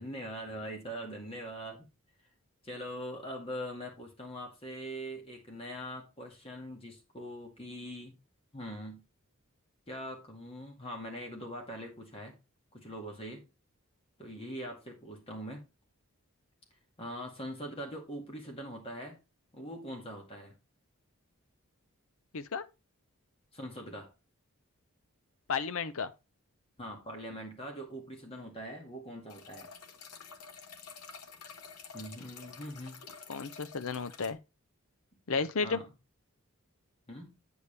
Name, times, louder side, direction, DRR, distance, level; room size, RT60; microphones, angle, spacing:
voice 1, 0.0-1.9 2.6-8.1 8.5-9.0 9.9-12.4 12.7-13.4 14.2-15.6 17.0-19.2 19.5-20.6 23.5-24.1 26.8-29.7 31.9-33.0 35.6-35.9 37.1-37.4, equal, 25° left, 2.0 m, -42 dB
voice 2, 22.3-22.6 25.5-26.1 33.3-34.4 35.3-35.8, left 5 dB, 65° left, 0.6 m, -33 dB
sound 1, 29.3-34.3, left 5 dB, 90° left, 1.0 m, -49 dB
8.2 x 7.0 x 3.3 m
head